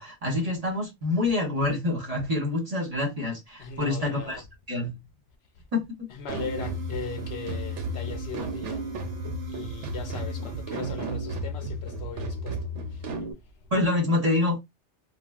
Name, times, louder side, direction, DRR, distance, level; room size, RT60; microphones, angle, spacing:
voice 1, 0.0-4.4 4.7-5.0 5.7-5.8 13.7-14.6, left 2 dB, 35° right, 1.1 m, -26 dB
voice 2, 3.6-4.4 6.1-9.1 9.4-13.4, left 5 dB, 70° left, 0.8 m, -39 dB
sound 1, 6.3-13.3, right 1 dB, 85° right, 1.0 m, -33 dB
sound 2, 6.4-11.6, right 8 dB, 55° right, 0.9 m, -44 dB
3.2 x 2.3 x 2.3 m
omnidirectional pair, 1.2 m